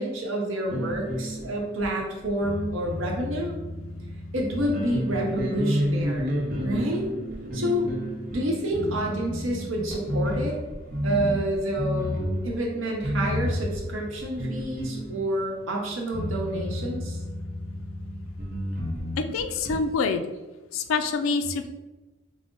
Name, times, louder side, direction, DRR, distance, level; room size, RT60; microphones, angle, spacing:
voice 1, 0.0-3.5 4.3-7.1 7.5-7.9 8.3-10.6 11.0-17.2, right 1 dB, 75° right, 0 dB, 0.9 m, -28 dB
sound 1, 0.6-15.6 16.1-19.8, equal, 45° right, 0.6 m, -31 dB
voice 2, 19.2-20.2 20.7-21.7, left 4 dB, 85° left, 9 dB, 0.4 m, -26 dB
4.9 x 2.0 x 3.7 m, 1.1 s
head